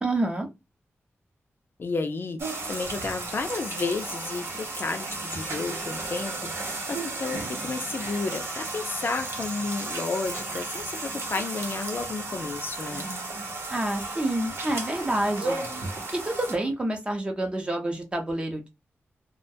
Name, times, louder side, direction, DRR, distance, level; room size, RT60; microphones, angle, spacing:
voice 1, 0.0-0.5 13.7-15.6 16.1-18.7, right 1 dB, 20° right, 0.6 m, -28 dB
voice 2, 1.8-13.1, left 4 dB, 50° left, 0.4 m, -32 dB
sound 1, 2.4-16.6, right 2 dB, 60° right, 0.8 m, -34 dB
2.3 x 2.1 x 2.6 m
wide cardioid pair, 120°, 5 cm